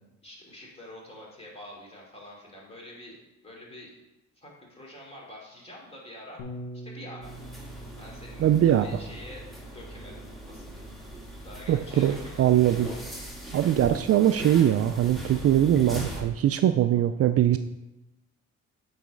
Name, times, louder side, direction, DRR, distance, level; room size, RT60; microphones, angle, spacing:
voice 1, 0.2-3.9 4.4-6.4 6.8-7.4 8.0-8.5 8.8-10.9 11.4-12.4, left 1 dB, 20° left, -3 dB, 2.8 m, -46 dB
Bass guitar, 6.4-12.6, right 1 dB, 85° left, 1.3 m, -46 dB
sound 1, 7.2-16.2, right 1 dB, ahead, 2.2 m, -40 dB
voice 2, 8.4-8.9 11.7-12.9 13.5-17.6, right 11 dB, 50° right, 10 dB, 0.4 m, -22 dB
8.3 x 4.1 x 5.1 m, 0.98 s
cardioid pair, 90°, 30 cm